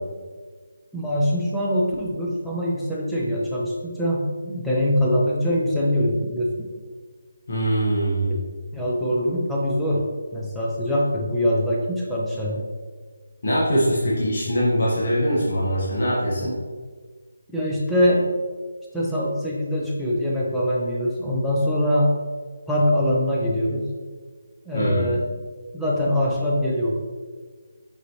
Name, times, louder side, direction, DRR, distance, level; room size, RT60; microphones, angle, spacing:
voice 1, 0.9-6.7 8.3-8.4 8.7-10.1 10.3-12.6 17.5-18.3 18.9-22.1 22.7-23.9 24.7-25.3 25.7-27.0, equal, ahead, -6 dB, 0.5 m, -23 dB
voice 2, 7.5-8.4 13.4-16.6 24.7-25.1, equal, 40° left, -7 dB, 1.3 m, -22 dB
5.6 x 5.5 x 3.1 m, 1.5 s
hypercardioid pair, 175°, 0 cm